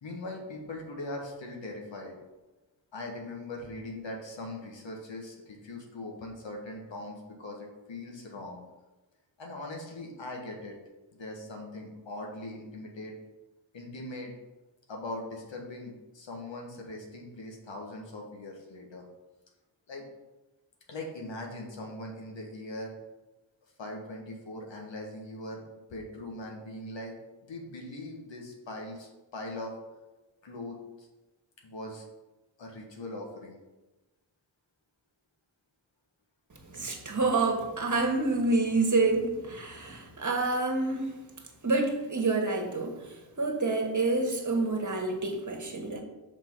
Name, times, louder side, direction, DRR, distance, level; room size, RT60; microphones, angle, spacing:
voice 1, 0.0-2.2 2.9-8.6 9.4-10.8 11.1-13.2 13.7-14.3 14.9-19.0 19.9-20.0 20.9-22.9 23.8-25.6 25.9-29.7 30.4-31.1 31.6-32.0 32.6-33.6, left 1 dB, 85° left, 0 dB, 1.5 m, -40 dB
voice 2, 36.7-41.2 41.6-42.9 43.4-46.0, right 3 dB, 45° right, 3 dB, 1.5 m, -28 dB
6.0 x 4.9 x 4.6 m, 1.1 s
cardioid pair, 40°, 44 cm